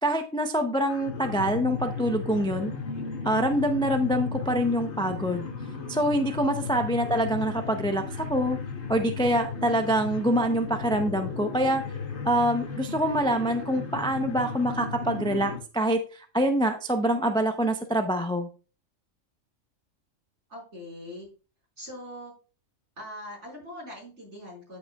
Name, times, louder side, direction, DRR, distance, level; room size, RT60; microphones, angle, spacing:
voice 1, 0.0-2.7 3.2-5.5 5.9-8.0 8.3-8.6 8.9-11.8 12.2-18.5, right 1 dB, 5° left, 6 dB, 0.3 m, -25 dB
sound 1, 0.9-15.6, left 5 dB, 55° left, 1.5 m, -35 dB
voice 2, 20.5-21.3 21.8-22.3 23.0-24.8, left 1 dB, 55° right, -3 dB, 5.2 m, -42 dB
13.5 x 5.3 x 2.3 m, 0.35 s
omnidirectional pair, 1.4 m